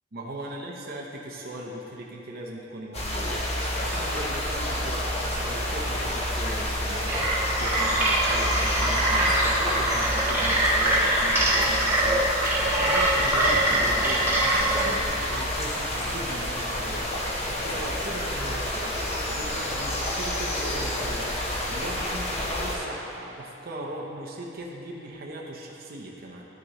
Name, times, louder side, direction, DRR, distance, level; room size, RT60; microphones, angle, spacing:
voice 1, 0.1-26.4, right 1 dB, 50° right, -2 dB, 0.8 m, -39 dB
sound 1, 2.9-22.8, left 1 dB, 35° left, 1.2 m, -29 dB
sound 2, 7.0-15.0, right 1 dB, 10° right, 1.3 m, -24 dB
12.5 x 6.3 x 3.1 m, 2.9 s
head